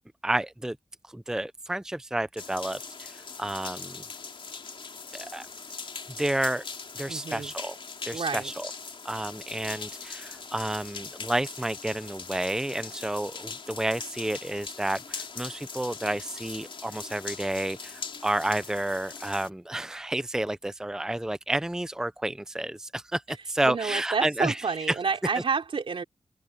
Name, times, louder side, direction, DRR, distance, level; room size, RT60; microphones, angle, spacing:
voice 1, 0.2-0.8 1.1-4.0 5.1-5.5 6.2-6.6 7.0-7.8 8.0-8.7 9.0-24.6 24.9-25.0 25.3-25.4, right 1 dB, 5° right, 0.6 m, -30 dB
sound 1, 2.4-19.5, left 4 dB, 65° left, 3.5 m, -41 dB
voice 2, 7.1-7.5 8.1-8.5 23.6-26.0, right 5 dB, 70° right, 3.7 m, -29 dB
open air
wide cardioid pair, 75°, 10 cm